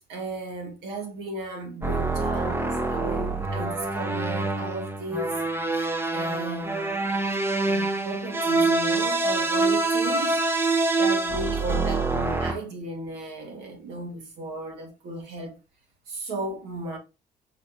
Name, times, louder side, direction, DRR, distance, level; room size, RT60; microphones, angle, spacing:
voice 1, 0.1-5.4 6.1-7.1 7.6-10.4 11.0-15.6 16.1-17.0, right 1 dB, 80° right, 1.9 m, -35 dB
sound 1, 1.8-12.5, right 3 dB, 15° right, 0.7 m, -25 dB
5.1 x 3.5 x 3.0 m
cardioid pair, 110°, 17 cm